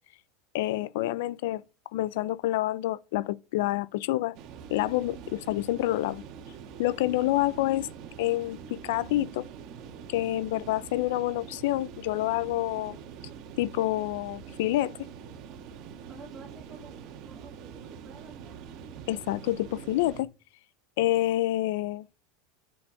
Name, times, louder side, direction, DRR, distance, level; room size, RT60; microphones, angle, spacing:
voice 1, 0.5-1.6 1.9-4.4 4.7-6.2 6.8-7.9 8.2-9.5 10.1-13.0 13.6-14.9 19.1-20.3 21.0-22.1, left 15 dB, 65° left, 0.5 m, -28 dB
sound 1, 4.3-20.2, right 7 dB, 40° right, 2.0 m, -45 dB
voice 2, 16.1-16.9 17.2-18.6, right 3 dB, 15° right, 3.2 m, -51 dB
7.7 x 7.1 x 7.6 m
supercardioid pair, 170°, 0 cm